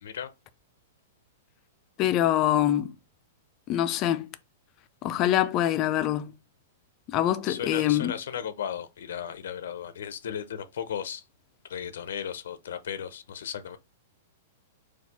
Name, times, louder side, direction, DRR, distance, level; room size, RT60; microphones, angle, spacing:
voice 1, 2.0-2.9 3.7-4.3 5.0-6.3 7.1-8.1, left 12 dB, 30° left, 0.4 m, -24 dB
voice 2, 7.5-11.2 11.7-13.8, left 8 dB, 75° left, 0.5 m, -35 dB
4.4 x 2.3 x 4.1 m
hypercardioid pair, 160°, 0 cm